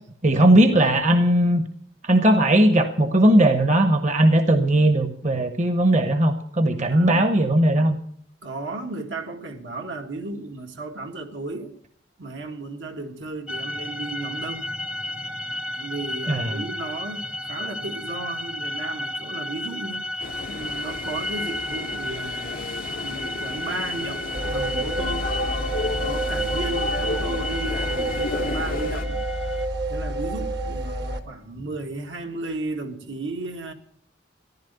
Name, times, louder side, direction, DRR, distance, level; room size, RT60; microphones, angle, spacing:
voice 1, 0.2-1.6 2.0-8.0 16.3-16.6, right 1 dB, 40° right, 1.0 m, -18 dB
voice 2, 6.9-7.3 8.4-11.7 12.2-14.7 15.7-20.1 20.5-22.6 23.0-25.3 26.0-29.2 29.9-33.7, right 2 dB, 80° right, 1.9 m, -34 dB
sound 1, 13.5-29.7, left 1 dB, 5° right, 0.6 m, -32 dB
sound 2, 20.2-29.0, left 4 dB, 50° left, 0.5 m, -33 dB
sound 3, 24.3-31.2, right 1 dB, 60° right, 1.4 m, -29 dB
14.5 x 11.0 x 6.8 m
head